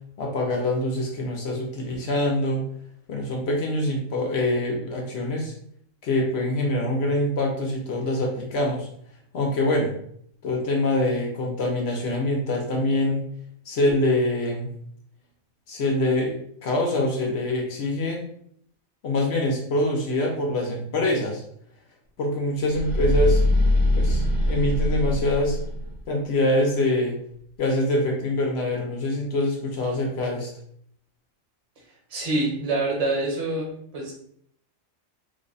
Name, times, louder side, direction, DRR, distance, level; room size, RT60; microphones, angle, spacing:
voice 1, 0.2-2.6 3.1-5.5 6.0-8.9 9.3-10.0 10.4-13.2 13.7-14.7 15.7-18.3 19.0-21.4 22.2-23.4 24.0-25.6 26.1-27.2 27.6-30.5, left 1 dB, 60° left, 1 dB, 0.8 m, -24 dB
sound 1, 22.7-26.0, left 1 dB, 10° right, 0.5 m, -22 dB
voice 2, 32.1-34.1, right 2 dB, 30° right, -3 dB, 1.0 m, -26 dB
3.3 x 2.1 x 3.9 m, 0.66 s
omnidirectional pair, 1.4 m